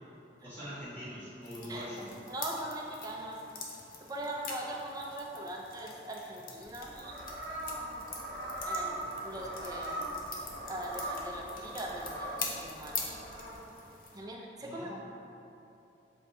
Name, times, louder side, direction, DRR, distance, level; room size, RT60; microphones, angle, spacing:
voice 1, 0.4-2.0 14.6-15.0, equal, 15° left, -12 dB, 1.4 m, -43 dB
sound 1, 1.4-14.2, left 4 dB, 50° left, 0.6 m, -45 dB
voice 2, 1.7-3.4 4.0-7.2 8.6-10.0 10.6-13.1 14.1-15.0, right 1 dB, 20° right, -1 dB, 0.4 m, -41 dB
sound 2, 6.7-13.6, right 1 dB, 70° right, 0.7 m, -40 dB
7.3 x 2.7 x 2.6 m, 2.9 s
head